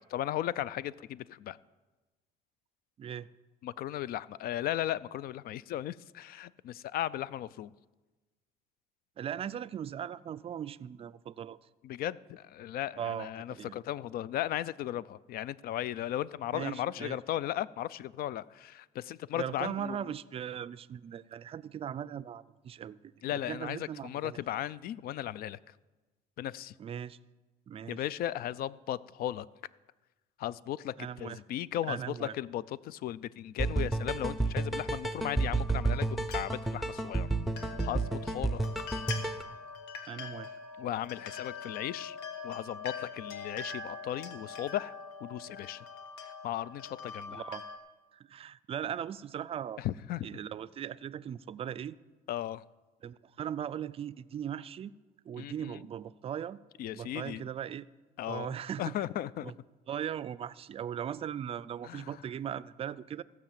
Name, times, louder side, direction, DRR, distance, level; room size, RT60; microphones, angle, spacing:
voice 1, 0.0-1.6 3.6-7.7 11.8-20.0 23.2-25.6 26.4-26.7 27.9-29.5 30.4-37.3 37.6-38.6 40.8-42.2 42.4-44.9 45.2-45.8 46.2-47.4 49.8-50.3 52.3-52.6 55.4-55.8 56.8-57.4 58.2-58.5 58.8-59.5 61.8-62.2, left 12 dB, 60° left, 20 dB, 0.4 m, -36 dB
voice 2, 3.0-3.3 9.2-11.6 13.0-13.7 16.5-17.2 19.3-24.4 26.8-27.2 27.7-28.1 31.0-31.4 31.9-32.3 40.1-40.6 47.3-47.6 48.1-49.9 50.2-52.0 53.0-54.9 55.3-56.6 56.9-57.9 58.3-58.9 59.4-59.5 59.9-63.2, right 9 dB, 35° right, 16 dB, 0.4 m, -39 dB
sound 1, 33.6-39.4, right 2 dB, ahead, 0.7 m, -31 dB
sound 2, 35.3-47.8, left 5 dB, 85° left, 1.3 m, -44 dB
15.5 x 6.0 x 7.3 m, 1.2 s
cardioid pair, 110°, 17 cm